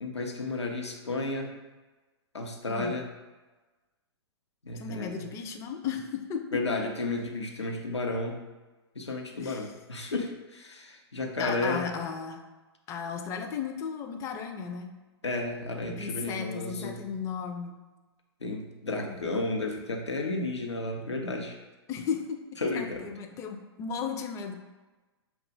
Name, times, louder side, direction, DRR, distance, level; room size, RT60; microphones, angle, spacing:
voice 1, 0.0-1.5 2.3-3.1 4.6-5.2 6.5-8.4 8.9-11.8 15.2-17.0 18.4-21.6 22.6-23.1, left 2 dB, 85° left, 1 dB, 0.8 m, -32 dB
voice 2, 2.6-2.9 4.8-6.6 9.3-9.7 11.4-12.4 12.9-14.9 15.9-17.8 21.9-24.5, left 6 dB, 20° left, 5 dB, 0.4 m, -35 dB
5.7 x 2.4 x 3.8 m, 1.2 s
figure-of-eight pair, 115°, 14 cm